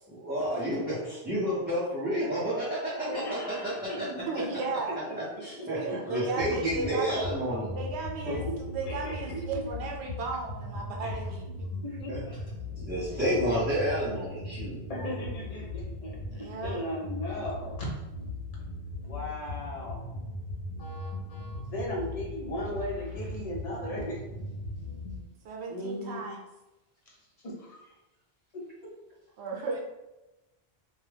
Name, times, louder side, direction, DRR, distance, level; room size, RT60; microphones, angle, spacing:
voice 1, 0.1-3.2 3.6-4.1 5.4-7.7 8.3-8.4 12.1-12.2 12.8-14.8, equal, 10° right, -13 dB, 0.6 m, -30 dB
voice 2, 3.0-4.1 4.4-4.5 5.1-6.4 8.3-9.7 11.0-11.2 11.8-12.4 14.9-17.9 19.0-20.0 20.8-24.2 25.7-26.2 27.1-27.9 28.5-28.9, left 1 dB, 40° left, -3 dB, 0.7 m, -38 dB
voice 3, 4.0-5.1 5.8-7.3 7.7-11.7 13.1-13.3 16.3-16.8 25.4-26.4 29.4-29.8, right 4 dB, 80° right, 1 dB, 0.9 m, -35 dB
sound 1, 6.4-25.2, left 2 dB, 85° left, 0.9 m, -38 dB
2.3 x 2.2 x 3.3 m, 1.0 s
omnidirectional pair, 1.1 m